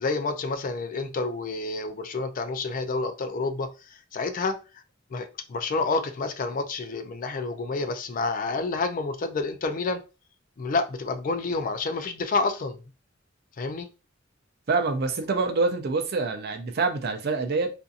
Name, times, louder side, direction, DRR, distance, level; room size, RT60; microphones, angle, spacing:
voice 1, 0.0-4.6 5.1-10.0 10.6-12.8 13.6-13.9, left 3 dB, 45° left, 0.4 m, -29 dB
voice 2, 14.7-17.7, right 3 dB, 50° right, 0.5 m, -26 dB
2.6 x 2.5 x 2.4 m
head